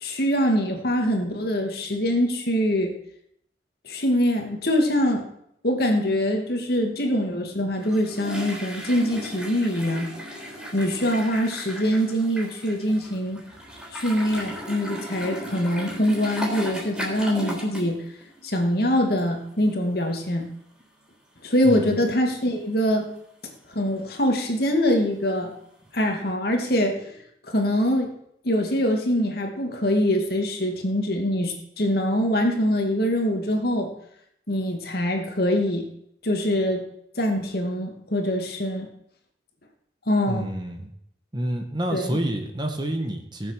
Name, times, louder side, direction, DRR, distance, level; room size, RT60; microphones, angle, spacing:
voice 1, 0.0-2.9 3.8-5.2 5.6-10.1 10.7-13.4 13.9-18.0 18.4-20.5 21.4-23.1 23.8-25.5 25.9-27.1 27.5-28.1 28.4-33.9 34.5-35.9 36.2-36.8 37.2-38.9 40.1-40.5 41.9-42.2, equal, 55° left, 3 dB, 2.2 m, -24 dB
sound 1, 7.8-18.0 18.2-18.5 19.2-19.3 19.6-19.7 26.0-26.1, equal, 5° right, 3.6 m, -36 dB
voice 2, 21.6-22.0 40.3-40.9 41.3-43.5, right 1 dB, 25° right, 4 dB, 1.5 m, -28 dB
17.5 x 7.4 x 6.5 m, 0.74 s
head